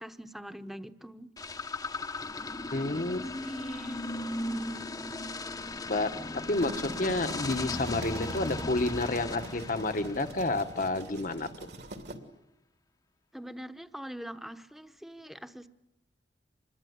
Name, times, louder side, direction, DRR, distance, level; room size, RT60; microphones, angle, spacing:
voice 1, 0.0-1.3 2.8-4.1 4.5-4.8 13.3-15.7, equal, ahead, 11 dB, 1.0 m, -43 dB
sound 1, 1.4-10.9, left 2 dB, 20° left, 0.9 m, -37 dB
voice 2, 2.7-3.2 5.9-6.2 6.5-11.7, left 2 dB, 50° left, 8 dB, 1.2 m, -30 dB
sound 2, 6.3-12.2, right 1 dB, 65° right, 2.9 m, -43 dB
26.5 x 21.5 x 9.5 m, 0.90 s
head